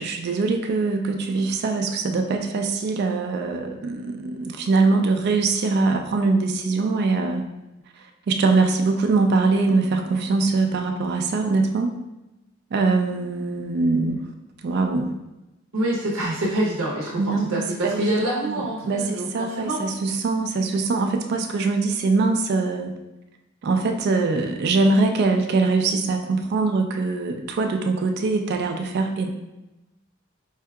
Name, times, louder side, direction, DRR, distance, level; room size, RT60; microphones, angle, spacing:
voice 1, 0.0-7.4 8.0-11.9 12.7-14.3 14.6-15.1 17.2-23.0 23.6-29.3, right 3 dB, 55° right, 4 dB, 0.3 m, -23 dB
voice 2, 15.7-19.8, right 1 dB, 85° right, -4 dB, 0.7 m, -26 dB
4.5 x 2.7 x 2.3 m, 0.99 s
head